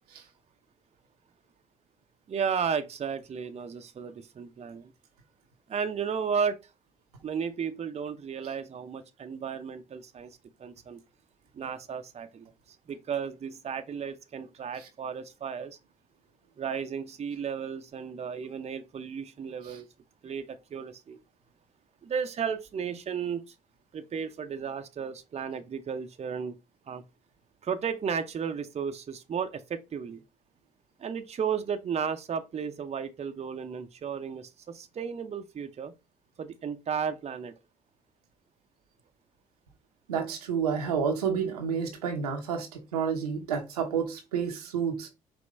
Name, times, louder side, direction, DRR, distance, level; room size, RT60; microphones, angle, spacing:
voice 1, 2.3-4.9 5.7-6.6 7.2-11.0 11.5-12.5 12.9-15.8 16.6-19.9 20.2-21.2 22.0-23.5 23.9-26.5 26.9-27.0 27.6-30.2 31.0-35.9 36.4-37.5, right 6 dB, 35° right, 0.7 m, -34 dB
voice 2, 40.1-45.1, right 6 dB, 85° right, 0.8 m, -30 dB
5.2 x 3.0 x 3.1 m
hypercardioid pair, 50°, 19 cm